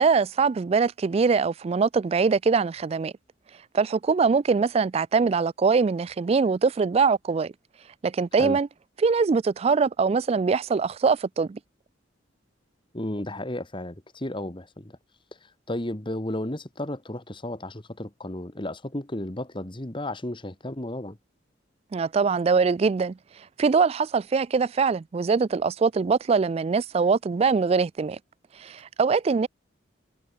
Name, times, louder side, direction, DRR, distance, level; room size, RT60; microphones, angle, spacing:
voice 1, 0.0-3.1 3.7-7.5 8.0-8.7 9.0-11.6 21.9-23.2 23.6-28.2 28.6-29.5, right 5 dB, 30° right, 0.3 m, -23 dB
voice 2, 12.9-14.9 15.3-21.2, left 1 dB, 25° left, 1.7 m, -33 dB
head